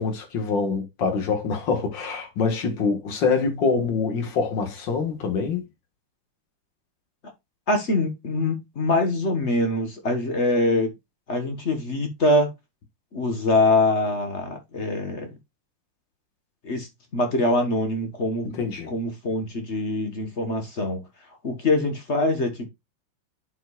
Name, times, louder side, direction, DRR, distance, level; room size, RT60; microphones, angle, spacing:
voice 1, 0.0-5.7 18.5-18.9, left 4 dB, 60° left, 2.1 m, -25 dB
voice 2, 7.7-10.9 11.3-12.5 13.1-15.3 16.6-16.9 17.1-18.6 18.9-21.0 21.4-22.7, left 2 dB, 40° left, 1.2 m, -24 dB
11.0 x 4.7 x 2.3 m
omnidirectional pair, 2.4 m